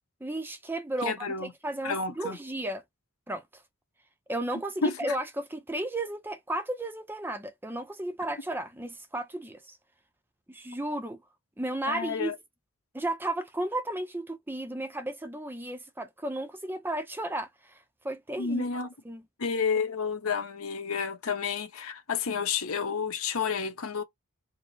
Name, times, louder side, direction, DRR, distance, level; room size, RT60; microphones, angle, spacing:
voice 1, 0.2-2.8 3.3-3.6 4.3-9.8 10.5-11.2 11.6-12.3 12.9-18.6 19.1-19.2, right 1 dB, 10° right, 0.4 m, -34 dB
voice 2, 1.0-1.5 1.8-2.4 4.8-4.9 11.9-12.3 18.4-18.9 19.4-24.0, left 5 dB, 80° left, 0.9 m, -30 dB
4.4 x 2.0 x 3.1 m
head